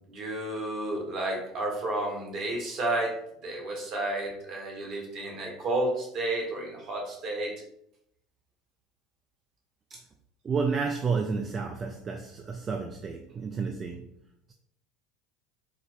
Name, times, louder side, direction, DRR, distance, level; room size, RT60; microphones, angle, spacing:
voice 1, 0.1-3.2 3.4-7.5, right 2 dB, 55° right, -1 dB, 1.2 m, -31 dB
voice 2, 10.4-14.2, right 5 dB, 35° right, 4 dB, 0.3 m, -31 dB
4.1 x 2.0 x 2.5 m, 0.74 s
hypercardioid pair, 85°, 0 cm